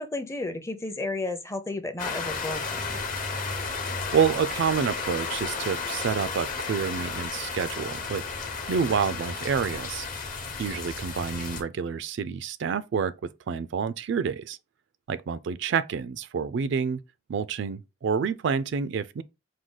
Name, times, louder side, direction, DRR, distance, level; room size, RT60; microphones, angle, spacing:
voice 1, 0.0-3.0, left 2 dB, 15° left, 0.5 m, -33 dB
sound 1, 2.0-11.6, left 4 dB, 45° left, 0.8 m, -33 dB
voice 2, 4.1-10.1 10.6-13.1 13.5-14.6 15.1-17.0 17.3-19.2, right 6 dB, 65° right, 0.3 m, -28 dB
4.7 x 2.2 x 3.7 m
head